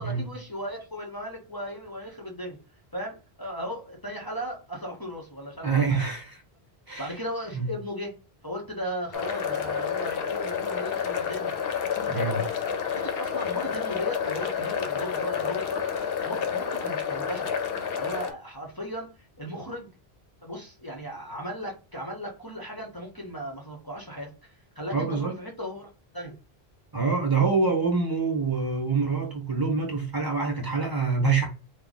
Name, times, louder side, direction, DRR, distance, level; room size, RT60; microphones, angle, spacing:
voice 1, 0.0-2.6 2.9-6.0 7.0-8.2 8.4-11.5 11.9-12.5 12.9-15.9 16.3-17.5 18.0-19.9 20.4-26.3, equal, 20° left, 0.9 m, -36 dB
voice 2, 5.6-6.4 6.9-7.2 7.5-7.7 12.1-12.4 24.9-25.4 26.9-31.5, right 4 dB, 20° right, 1.1 m, -26 dB
sound 1, 9.1-18.3, left 7 dB, 65° left, 0.8 m, -29 dB
3.3 x 2.3 x 3.9 m
omnidirectional pair, 1.1 m